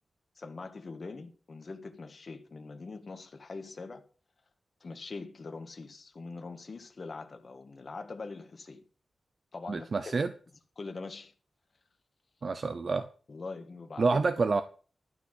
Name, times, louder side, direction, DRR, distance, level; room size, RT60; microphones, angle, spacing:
voice 1, 0.4-4.0 4.8-8.8 9.5-10.2 10.8-11.3 13.3-14.2, left 3 dB, 40° left, 1.6 m, -43 dB
voice 2, 9.7-10.3 12.4-13.1 14.0-14.6, right 4 dB, 45° right, 0.7 m, -28 dB
12.5 x 5.9 x 8.0 m
wide cardioid pair, 170°, 0 cm